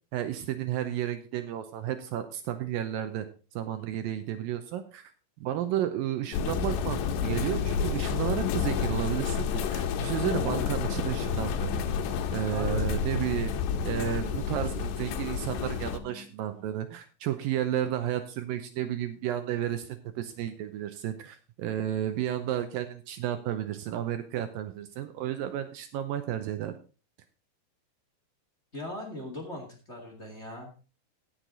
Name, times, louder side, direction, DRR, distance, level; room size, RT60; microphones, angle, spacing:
voice 1, 0.1-3.3 3.6-5.1 5.4-11.9 12.3-13.5 13.8-26.8, right 11 dB, 80° right, 9 dB, 2.0 m, -32 dB
sound 1, 6.2-16.3, left 6 dB, 55° left, 2.5 m, -48 dB
sound 2, 6.3-16.0, left 7 dB, 90° left, 3.0 m, -30 dB
voice 2, 12.5-12.9 28.7-30.8, left 1 dB, 30° left, 1 dB, 1.3 m, -39 dB
16.0 x 6.5 x 3.9 m, 0.35 s
omnidirectional pair, 4.9 m